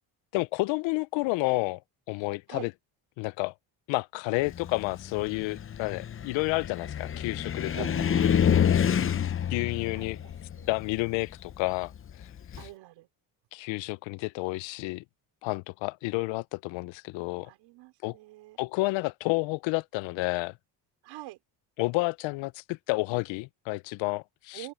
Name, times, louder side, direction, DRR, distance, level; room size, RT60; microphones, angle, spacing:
voice 1, 0.3-1.8 2.1-2.7 3.2-3.5 3.9-8.4 9.5-10.2 10.7-11.9 13.5-15.0 15.4-17.5 18.0-18.2 18.6-20.5 21.8-24.7, left 23 dB, 80° left, 0.6 m, -30 dB
Car, 4.5-12.7, left 8 dB, 30° left, 0.7 m, -28 dB
voice 2, 7.7-8.4 9.9-10.7 12.6-13.1 17.4-18.6 21.0-21.4 24.5-24.7, right 18 dB, 85° right, 4.6 m, -44 dB
open air
cardioid pair, 100°, 44 cm